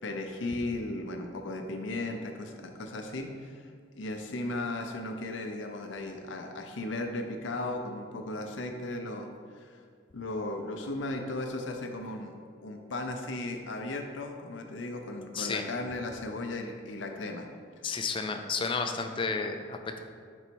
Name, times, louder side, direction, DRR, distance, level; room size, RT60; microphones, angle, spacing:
voice 1, 0.0-9.8 10.1-12.3 12.6-17.5, left 2 dB, 75° left, 4 dB, 0.6 m, -36 dB
voice 2, 15.3-15.7 17.8-20.0, left 4 dB, 25° left, 6 dB, 0.4 m, -32 dB
5.4 x 4.0 x 4.5 m, 2.1 s
head